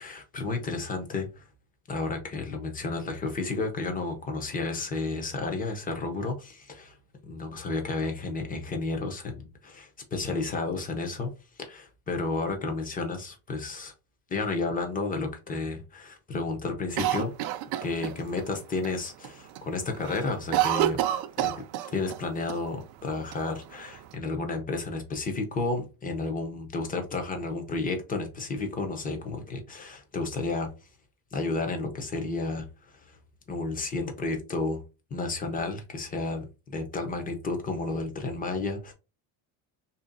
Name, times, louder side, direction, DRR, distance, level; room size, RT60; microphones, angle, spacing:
voice 1, 0.0-1.4 1.9-7.0 7.3-11.3 11.6-13.9 14.3-17.3 17.8-21.0 21.4-21.6 21.9-30.7 31.3-32.7 32.9-33.2 33.5-34.8 35.1-38.9, left 3 dB, 20° left, 0.7 m, -32 dB
Cough, 17.0-18.5 18.8-18.9 19.2-19.7 19.9-22.2 22.5-22.6 23.3-24.1, right 13 dB, 55° right, 0.5 m, -28 dB
3.0 x 2.8 x 3.8 m
cardioid pair, 160°, 48 cm